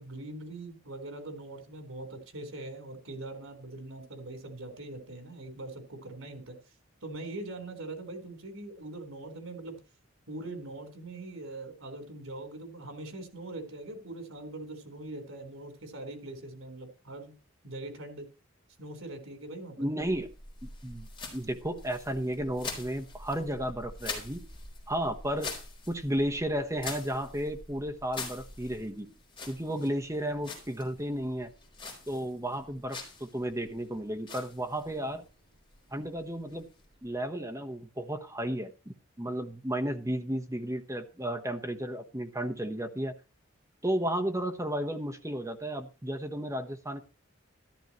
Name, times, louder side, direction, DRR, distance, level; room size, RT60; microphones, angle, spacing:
voice 1, 0.0-6.5 7.0-9.8 10.3-17.4 17.6-18.3 18.8-19.8, right 2 dB, 85° right, 6 dB, 4.2 m, -42 dB
voice 2, 19.8-20.3 20.6-24.4 24.9-25.5 25.9-29.1 29.5-31.5 32.1-35.2 35.9-36.7 37.0-43.1 43.8-47.0, right 1 dB, 15° right, 5 dB, 1.1 m, -33 dB
sound 1, 20.0-37.3, left 3 dB, 25° left, 4.5 m, -45 dB
13.5 x 12.5 x 3.1 m, 0.34 s
head